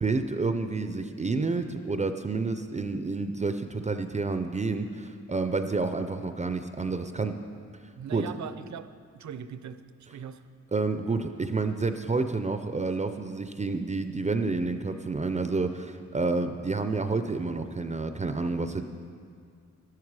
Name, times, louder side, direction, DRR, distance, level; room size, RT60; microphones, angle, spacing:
voice 1, 0.0-7.4 8.1-8.3 10.7-18.9, right 3 dB, 25° right, 8 dB, 0.4 m, -29 dB
voice 2, 8.0-8.9 9.1-10.4, right 8 dB, 65° right, 11 dB, 0.6 m, -40 dB
12.5 x 11.5 x 4.8 m, 2.1 s
wide cardioid pair, 130°, 30 cm